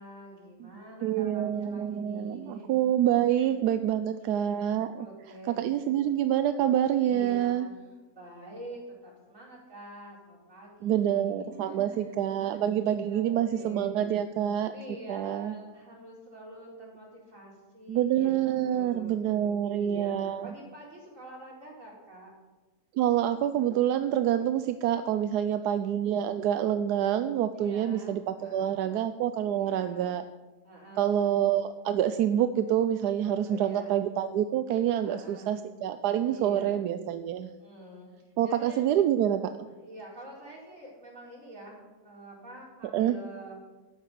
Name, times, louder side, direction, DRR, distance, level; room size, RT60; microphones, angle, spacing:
voice 1, 0.0-2.7 3.3-3.5 4.2-4.7 5.0-5.9 7.0-12.7 13.1-14.1 14.7-18.3 18.7-22.3 25.3-25.8 27.5-29.0 29.5-30.2 30.6-31.3 33.2-34.0 35.0-35.6 36.3-36.8 37.6-38.8 39.8-41.8 42.0-43.6, right 1 dB, 50° right, -3 dB, 4.6 m, -46 dB
voice 2, 1.0-5.1 5.5-7.7 10.8-14.7 15.1-15.5 17.9-20.5 23.0-30.2 31.0-37.5 38.4-39.5 42.9-43.1, right 10 dB, 85° right, 10 dB, 1.2 m, -27 dB
13.0 x 9.9 x 6.7 m, 1.2 s
omnidirectional pair, 1.7 m